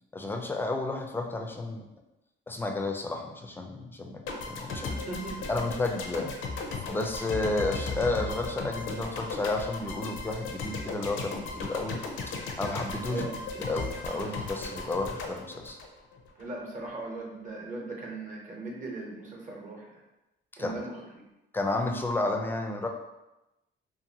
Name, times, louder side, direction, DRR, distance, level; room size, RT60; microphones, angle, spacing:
voice 1, 0.1-1.8 2.5-4.8 5.5-6.3 6.8-13.2 13.7-15.8 20.6-20.7 21.5-22.9, left 2 dB, 10° left, 3 dB, 0.4 m, -32 dB
sound 1, 4.3-16.5, left 3 dB, 80° left, 0.5 m, -36 dB
voice 2, 4.7-5.6 13.1-13.4 16.4-19.9 20.6-21.0, right 3 dB, 40° right, -3 dB, 0.8 m, -39 dB
2.6 x 2.5 x 2.7 m, 0.97 s
cardioid pair, 90°, 20 cm